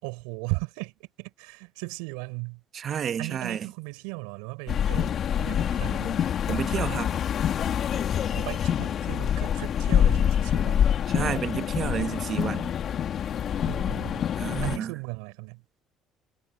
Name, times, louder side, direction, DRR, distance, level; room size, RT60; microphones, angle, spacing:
voice 1, 0.0-2.6 3.2-6.2 8.3-10.9 13.5-14.3 14.6-15.8, right 31 dB, 85° right, 5.8 m, -37 dB
voice 2, 2.7-3.6 6.5-7.1 11.1-12.7 14.4-14.9, right 8 dB, 50° right, 1.2 m, -30 dB
sound 1, 4.7-14.8, left 9 dB, 55° left, 2.8 m, -26 dB
supercardioid pair, 75°, 0 cm